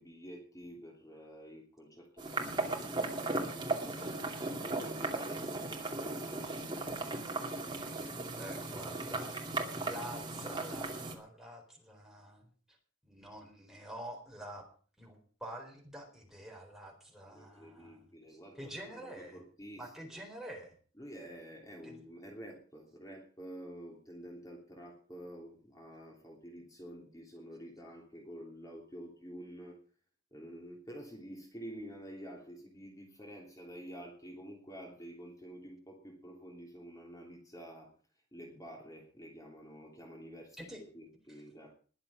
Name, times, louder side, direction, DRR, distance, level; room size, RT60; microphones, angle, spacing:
voice 1, 0.0-6.8 8.8-9.3 17.2-20.1 21.0-29.8 30.3-37.9 38.3-40.6 40.9-41.8, equal, 20° left, -1 dB, 3.3 m, -49 dB
sound 1, 2.2-11.1, right 2 dB, 25° right, 2.5 m, -37 dB
voice 2, 8.4-9.3 9.7-12.8 13.0-14.7 15.0-19.4 19.8-20.8 21.8-22.0 40.6-40.8, right 1 dB, ahead, 0 dB, 4.2 m, -47 dB
21.0 x 7.5 x 6.0 m, 0.42 s
head